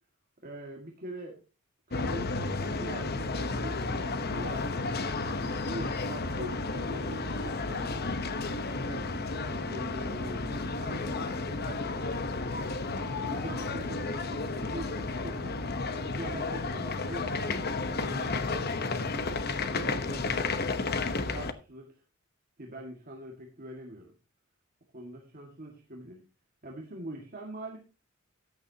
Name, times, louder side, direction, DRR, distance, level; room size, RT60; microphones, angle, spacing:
voice 1, 0.4-1.4 1.9-4.9 5.5-8.0 8.8-12.8 13.3-15.6 16.0-17.3 18.1-20.6 21.3-22.0 22.6-24.1 24.9-26.2 26.6-27.8, right 1 dB, 40° right, 0 dB, 1.9 m, -44 dB
sound 1, 1.9-21.5, left 3 dB, 45° left, 0.9 m, -32 dB
14.0 x 9.9 x 2.8 m, 0.30 s
head